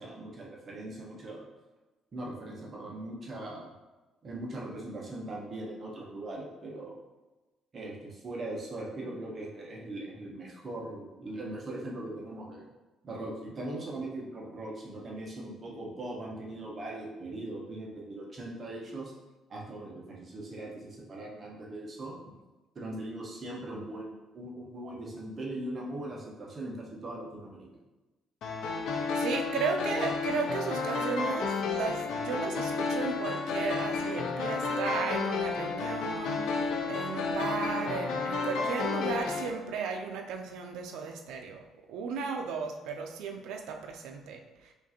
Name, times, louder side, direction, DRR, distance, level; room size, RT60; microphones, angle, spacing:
voice 1, 0.0-1.4 2.1-3.7 4.2-7.0 7.7-12.7 13.0-19.1 19.5-22.2 22.7-27.7, right 1 dB, 30° right, -2 dB, 0.7 m, -40 dB
sound 1, 28.4-39.5, left 4 dB, 60° left, 0.5 m, -31 dB
voice 2, 29.1-41.6 41.9-44.7, right 5 dB, 80° right, 3 dB, 0.4 m, -35 dB
5.0 x 2.5 x 2.8 m, 1.1 s
cardioid pair, 160°, 0 cm